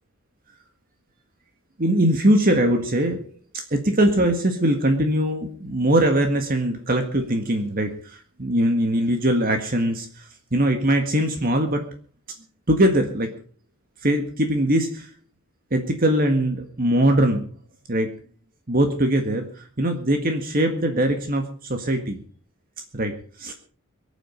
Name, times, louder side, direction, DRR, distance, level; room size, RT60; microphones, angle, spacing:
voice 1, 1.8-3.2 3.5-11.8 12.7-13.4 14.0-15.1 15.7-17.4 17.9-18.1 18.7-22.2 22.9-23.5, right 1 dB, 40° right, 5 dB, 1.8 m, -21 dB
23.5 x 9.2 x 5.2 m, 0.43 s
head